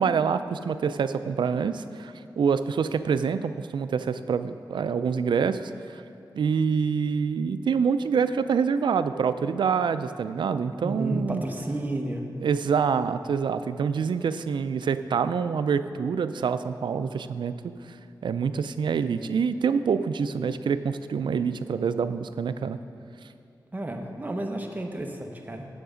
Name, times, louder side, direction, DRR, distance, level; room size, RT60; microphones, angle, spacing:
voice 1, 0.0-5.6 5.9-6.0 6.3-11.4 12.4-17.5 18.2-22.8, right 6 dB, 90° right, 12 dB, 0.3 m, -26 dB
voice 2, 10.8-12.2 23.7-25.7, right 1 dB, 20° right, 2 dB, 0.9 m, -31 dB
9.4 x 7.8 x 5.0 m, 2.5 s
wide cardioid pair, 100°, 8 cm